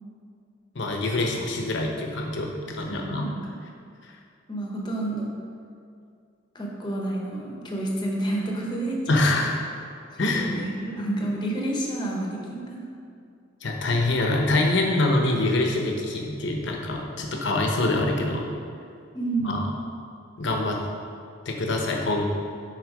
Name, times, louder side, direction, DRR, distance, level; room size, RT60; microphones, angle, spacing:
voice 1, 0.7-3.3 4.0-4.1 9.1-9.6 10.2-10.5 13.6-18.5 19.4-19.6 20.4-20.8 21.5-22.2, left 2 dB, 65° left, 1 dB, 0.9 m, -25 dB
voice 2, 2.9-3.4 4.5-5.3 6.5-9.0 10.1-12.9 19.1-19.7, right 1 dB, 25° left, -2 dB, 1.0 m, -29 dB
6.5 x 4.1 x 5.0 m, 2.4 s
head